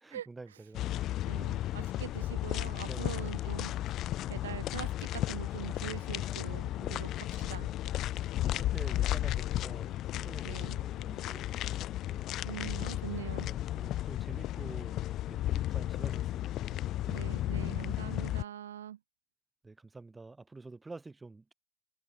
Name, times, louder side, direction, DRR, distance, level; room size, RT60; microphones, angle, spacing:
voice 1, 0.0-1.0 2.8-3.2 6.7-7.1 8.4-12.4 13.4-15.0 15.3-17.1 19.6-21.5, right 3 dB, 10° right, 6.2 m, -49 dB
sound 1, 0.7-18.4, left 14 dB, 35° left, 4.5 m, -34 dB
voice 2, 1.3-3.7 4.3-7.1 7.4-7.7 10.4-10.8 12.4-13.5 17.1-19.0, right 10 dB, 60° right, 5.9 m, -43 dB
figure-of-eight pair, 90°, 0 cm